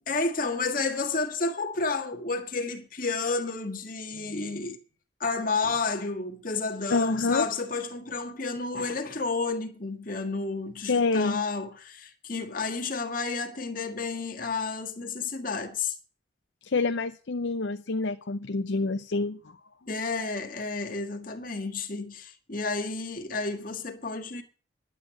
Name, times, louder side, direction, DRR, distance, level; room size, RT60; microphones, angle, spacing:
voice 1, 0.1-4.8 5.2-16.0 19.9-24.4, left 3 dB, 45° left, 1.7 m, -31 dB
voice 2, 6.9-7.5 10.8-11.4 16.6-19.6, left 3 dB, 65° left, 0.7 m, -27 dB
11.0 x 8.2 x 8.8 m
head